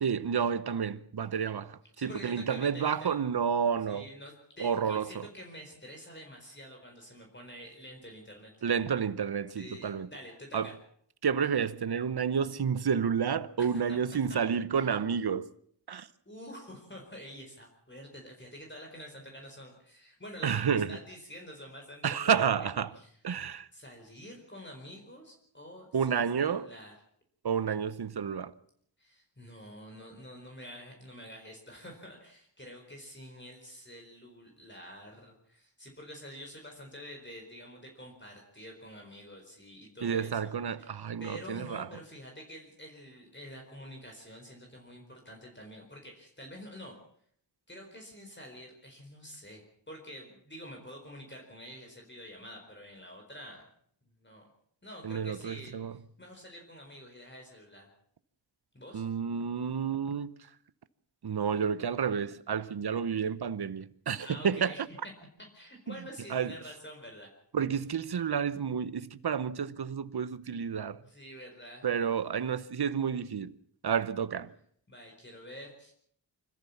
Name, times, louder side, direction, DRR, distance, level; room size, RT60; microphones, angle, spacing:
voice 1, 0.0-4.1 4.6-5.3 8.6-10.1 10.5-10.7 11.2-15.5 15.9-16.1 20.4-21.0 22.0-22.9 23.2-23.7 25.9-26.7 27.4-28.5 40.0-41.9 55.0-56.0 58.9-60.4 61.2-64.7 65.9-66.0 66.3-66.5 67.5-71.0 71.8-73.5 73.8-74.5, right 7 dB, 60° right, 0.9 m, -30 dB
voice 2, 2.0-3.2 3.9-8.5 9.6-10.8 13.6-14.0 14.3-14.4 14.7-14.9 16.3-22.7 22.9-23.1 23.7-26.9 29.0-40.5 40.8-47.0 47.7-53.6 54.2-54.5 54.8-55.8 56.2-57.9 58.7-59.1 64.2-64.8 65.5-67.3 71.1-71.9 74.9-75.9, equal, 25° left, 4.5 m, -48 dB
26.0 x 14.5 x 7.2 m
wide cardioid pair, 100°, 44 cm